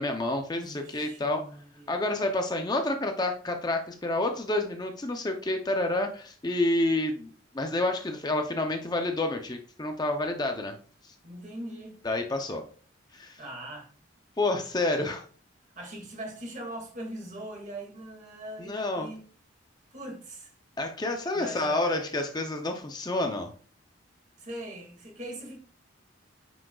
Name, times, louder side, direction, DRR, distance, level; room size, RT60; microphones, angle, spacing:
voice 1, 0.0-1.4 1.9-10.7 11.0-11.1 12.0-12.6 13.1-13.4 14.4-15.2 18.6-19.1 20.8-23.5, left 2 dB, 20° left, 0.5 m, -29 dB
voice 2, 0.5-2.0 11.2-12.0 13.4-13.9 14.8-15.2 15.8-19.2 19.9-20.5 21.3-22.1 24.4-25.6, right 1 dB, 35° right, 2.1 m, -41 dB
9.4 x 6.1 x 2.3 m
head